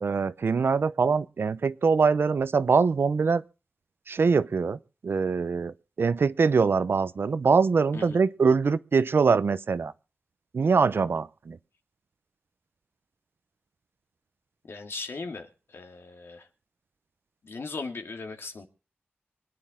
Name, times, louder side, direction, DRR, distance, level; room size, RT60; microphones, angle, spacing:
voice 1, 0.0-3.4 4.1-9.9 10.5-11.6, right 5 dB, 65° right, 0.8 m, -23 dB
voice 2, 14.7-15.5 15.7-16.5 17.4-18.7, left 4 dB, 70° left, 2.4 m, -38 dB
25.0 x 9.8 x 3.8 m
wide cardioid pair, 100°, 4 cm